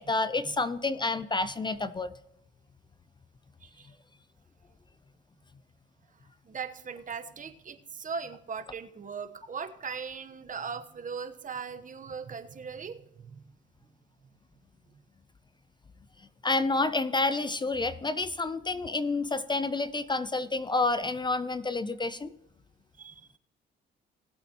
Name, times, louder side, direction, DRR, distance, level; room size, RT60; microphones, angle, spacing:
voice 1, 0.0-2.1 16.4-22.3, left 3 dB, 20° left, 14 dB, 0.5 m, -29 dB
voice 2, 3.6-3.9 6.4-13.4 23.0-23.3, right 6 dB, 40° right, 9 dB, 1.1 m, -39 dB
18.5 x 8.3 x 2.9 m, 0.86 s
cardioid pair, 90°, 20 cm